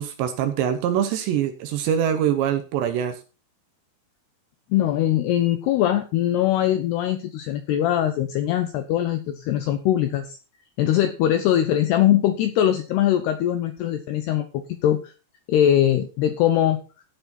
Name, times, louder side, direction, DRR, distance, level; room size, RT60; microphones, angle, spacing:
voice 1, 0.0-3.2, right 9 dB, 75° right, 9 dB, 2.8 m, -24 dB
voice 2, 4.7-10.4 10.8-15.1 15.5-16.8, left 11 dB, 85° left, 8 dB, 2.4 m, -21 dB
16.0 x 6.9 x 4.3 m, 0.34 s
omnidirectional pair, 5.8 m